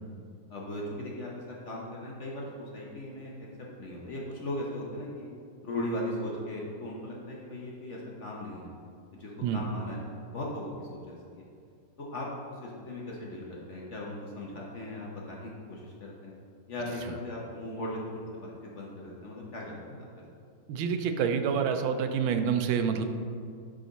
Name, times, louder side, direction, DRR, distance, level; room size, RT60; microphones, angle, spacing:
voice 1, 0.5-3.5 3.8-5.3 5.6-8.7 9.1-11.4 12.0-12.3 12.6-16.4 16.7-20.1, left 1 dB, 50° left, -3 dB, 0.8 m, -38 dB
voice 2, 20.7-23.0, right 7 dB, 75° right, 7 dB, 1.3 m, -27 dB
10.0 x 3.8 x 4.0 m, 2.3 s
omnidirectional pair, 2.3 m